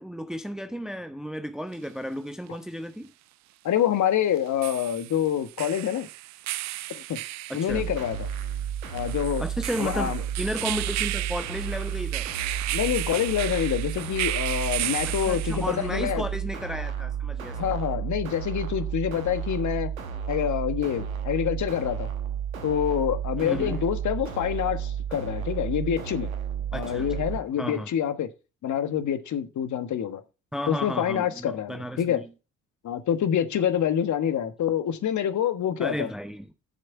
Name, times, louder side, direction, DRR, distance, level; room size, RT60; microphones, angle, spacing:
voice 1, 0.0-3.1 7.5-7.9 9.4-12.3 15.0-17.8 23.4-23.8 26.7-27.2 27.6-27.9 30.5-32.3 35.8-36.5, equal, ahead, 1.0 m, -33 dB
sound 1, 1.7-1.8 4.3-15.9, right 16 dB, 45° right, 0.5 m, -34 dB
voice 2, 3.6-6.1 6.9-7.2 7.5-8.3 8.9-9.4 9.8-10.2 12.7-16.2 17.5-19.9 20.3-22.1 22.6-26.3 26.7-28.3 28.6-30.2 30.7-32.2 32.8-36.1, left 9 dB, 45° left, 1.4 m, -26 dB
sound 2, 7.7-27.4, right 8 dB, 85° right, 1.3 m, -32 dB
11.0 x 6.7 x 4.5 m
figure-of-eight pair, 50°, 40 cm